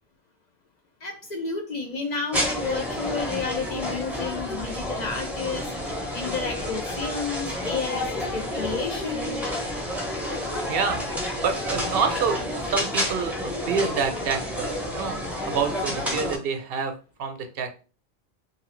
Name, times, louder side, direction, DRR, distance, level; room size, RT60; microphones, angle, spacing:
voice 1, 1.0-5.7 6.1-9.4, left 4 dB, 55° left, 4 dB, 0.5 m, -31 dB
sound 1, 2.3-16.4, left 1 dB, ahead, 0.5 m, -30 dB
voice 2, 10.7-11.0 11.4-16.9 17.2-17.7, right 5 dB, 70° right, 6 dB, 0.8 m, -27 dB
2.7 x 2.6 x 3.0 m, 0.35 s
omnidirectional pair, 1.0 m